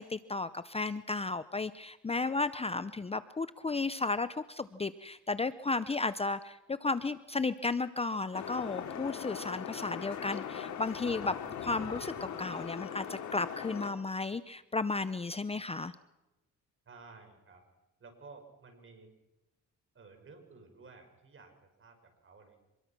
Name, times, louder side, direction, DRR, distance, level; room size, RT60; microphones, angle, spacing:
voice 1, 0.0-15.9, left 3 dB, 20° left, 14 dB, 0.7 m, -34 dB
sound 1, 8.3-13.9, left 8 dB, 70° left, 3.0 m, -40 dB
voice 2, 16.8-17.6 18.0-19.1 19.9-22.6, right 4 dB, 45° right, 5 dB, 6.5 m, -54 dB
25.5 x 21.5 x 6.1 m, 1.0 s
cardioid pair, 90°, 30 cm